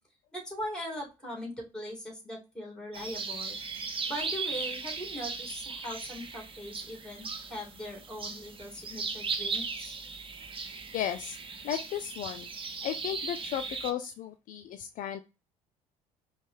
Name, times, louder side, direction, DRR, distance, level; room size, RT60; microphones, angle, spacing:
voice 1, 0.3-3.6 4.1-10.0, equal, 5° left, -1 dB, 2.6 m, -40 dB
sound 1, 2.9-13.9, right 4 dB, 30° right, 0.8 m, -37 dB
voice 2, 10.9-11.4 11.6-12.5 12.8-15.2, left 10 dB, 50° left, 8 dB, 0.4 m, -34 dB
5.2 x 2.3 x 3.2 m, 0.28 s
hypercardioid pair, 55°, 18 cm